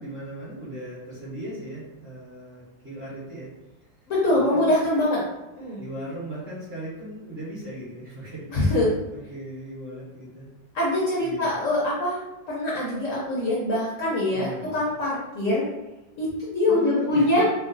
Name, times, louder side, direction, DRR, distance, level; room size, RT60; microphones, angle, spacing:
voice 1, 0.0-3.5 4.3-4.7 5.8-8.8 9.1-10.5 11.2-11.6 14.3-14.8 16.6-17.4, right 1 dB, 40° right, -8 dB, 1.2 m, -38 dB
voice 2, 4.1-5.2 5.6-5.8 8.5-8.9 10.7-12.2 12.5-15.7 16.2-17.4, left 1 dB, 60° left, -6 dB, 0.9 m, -23 dB
4.6 x 2.0 x 2.5 m, 1.0 s
omnidirectional pair, 1.9 m